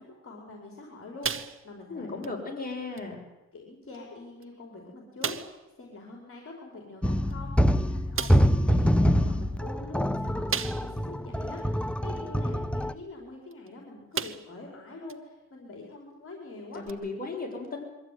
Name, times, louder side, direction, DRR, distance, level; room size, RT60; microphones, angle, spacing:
voice 1, 0.0-2.2 3.5-16.8, left 2 dB, 45° left, 1 dB, 5.1 m, -45 dB
sound 1, 1.2-1.9 2.2-2.4 3.0-3.1 3.9-4.0 4.4-4.5 5.2-5.6 7.3-7.4 8.2-8.6 10.5-11.1 11.6-11.7 13.5-13.7 14.1-14.6 15.1-15.2 16.9-17.0, right 7 dB, 45° right, 1.1 m, -34 dB
voice 2, 1.9-3.2 16.7-17.8, left 3 dB, 30° left, 0 dB, 6.8 m, -35 dB
sound 2, 7.0-12.9, equal, 5° left, 0.8 m, -25 dB
23.0 x 15.0 x 9.5 m, 1.0 s
cardioid pair, 100°, 29 cm